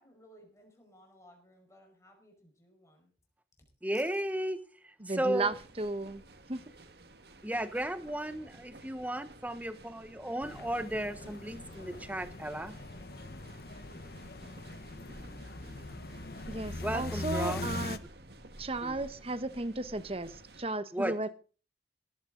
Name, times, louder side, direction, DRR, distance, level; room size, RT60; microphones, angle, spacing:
voice 1, 0.0-3.1, equal, 15° left, 1 dB, 5.2 m, -59 dB
voice 2, 3.8-5.5 7.4-12.8 16.8-17.6 18.8-19.0 20.9-21.1, right 1 dB, 10° right, 11 dB, 1.2 m, -35 dB
voice 3, 5.0-6.2 6.5-6.6 16.5-18.0 18.6-21.3, right 2 dB, 35° right, 13 dB, 1.1 m, -34 dB
sound 1, 5.3-20.6, right 1 dB, 65° right, 1.8 m, -53 dB
sound 2, 10.4-18.0, left 2 dB, 60° left, 1.1 m, -41 dB
18.0 x 14.0 x 3.9 m, 0.37 s
head